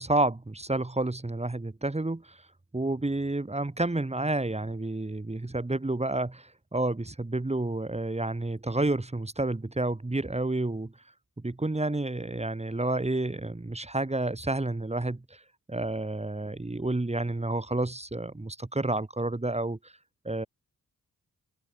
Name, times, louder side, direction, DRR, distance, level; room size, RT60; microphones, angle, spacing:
voice 1, 0.0-2.4 2.7-10.9 11.4-15.4 15.7-19.9 20.2-20.5, right 2 dB, 20° right, 3.3 m, -30 dB
open air
wide cardioid pair, 95°, 34 cm